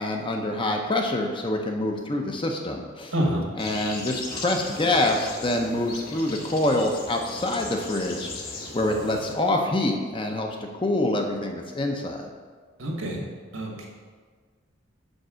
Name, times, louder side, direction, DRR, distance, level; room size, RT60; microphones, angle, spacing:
voice 1, 0.0-3.1 3.6-8.3 8.7-10.5 10.7-12.3, left 1 dB, 25° left, 3 dB, 0.6 m, -26 dB
voice 2, 3.1-3.4 12.8-13.2 13.5-13.9, equal, 85° right, -1 dB, 1.6 m, -27 dB
sound 1, 3.6-9.3, left 3 dB, 45° left, 0.9 m, -38 dB
5.3 x 4.6 x 6.1 m, 1.5 s
head